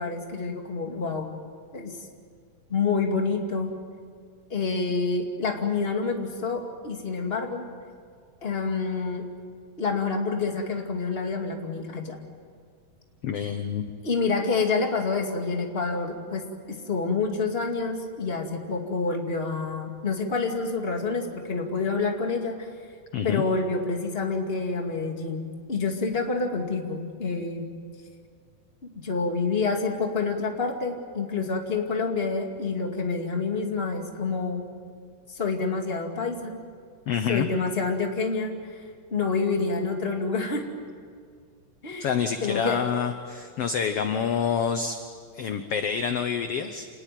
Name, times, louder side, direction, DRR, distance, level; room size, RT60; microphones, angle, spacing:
voice 1, 0.0-1.3 1.7-1.9 2.7-3.7 4.5-7.7 8.4-9.3 9.8-12.2 14.0-22.7 23.2-27.7 28.8-34.6 35.3-36.6 37.3-38.8 39.1-40.6 41.8-42.1 42.4-42.9, left 4 dB, 20° left, 2 dB, 2.0 m, -28 dB
voice 2, 13.2-13.8 23.1-23.4 37.1-37.5 42.0-45.0 45.3-46.9, left 7 dB, 65° left, 8 dB, 1.5 m, -27 dB
28.0 x 19.0 x 9.3 m, 2.1 s
omnidirectional pair, 3.9 m